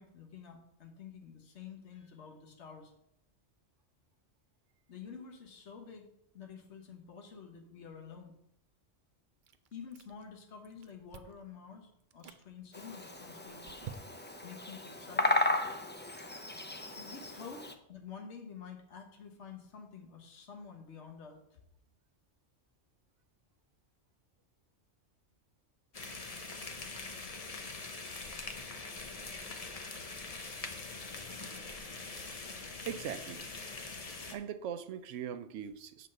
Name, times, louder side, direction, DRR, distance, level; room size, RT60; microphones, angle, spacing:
voice 1, 0.0-2.9 4.9-6.1 6.3-8.3 9.7-13.8 14.4-15.4 17.0-21.6, left 6 dB, 70° left, 2 dB, 1.4 m, -49 dB
Chewing mastication, 9.4-10.4 10.6-11.5 12.0-12.4 13.0-14.4, right 8 dB, 55° right, 0.6 m, -50 dB
Bird vocalization bird call bird song, 12.7-17.7, left 2 dB, 15° left, 0.3 m, -35 dB
sound 1, 25.9-34.3, left 3 dB, 35° left, 0.8 m, -43 dB
voice 2, 32.8-33.5 34.3-36.1, right 8 dB, 85° right, 11 dB, 1.0 m, -40 dB
8.1 x 4.0 x 6.4 m, 0.74 s
omnidirectional pair, 1.2 m